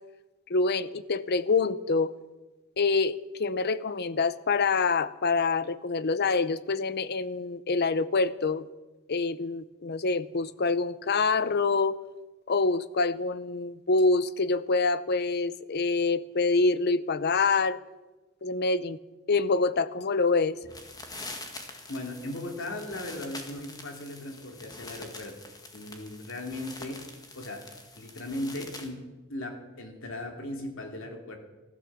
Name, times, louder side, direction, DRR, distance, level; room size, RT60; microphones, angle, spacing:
voice 1, 0.5-2.1 2.8-8.7 9.1-12.0 12.5-17.8 18.4-19.0 19.3-20.6, left 4 dB, 50° left, 16 dB, 0.7 m, -26 dB
sound 1, 20.6-28.9, left 2 dB, 20° left, 1.9 m, -45 dB
voice 2, 21.9-25.4 25.7-27.0 27.3-27.7 28.0-29.0 29.3-31.4, left 1 dB, 70° left, 3 dB, 2.8 m, -37 dB
15.0 x 12.5 x 7.4 m, 1.1 s
head